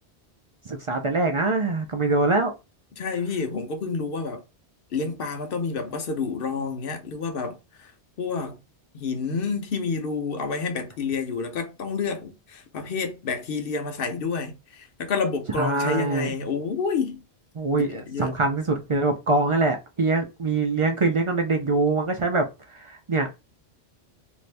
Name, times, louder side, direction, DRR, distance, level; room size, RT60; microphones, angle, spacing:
voice 1, 0.7-2.5 15.6-16.3 17.6-23.3, right 3 dB, 50° right, 0.3 m, -24 dB
voice 2, 3.0-4.4 4.9-7.6 8.2-8.6 8.9-17.2 17.9-18.3, left 4 dB, 60° left, 0.9 m, -29 dB
2.7 x 2.5 x 3.2 m
omnidirectional pair, 1.1 m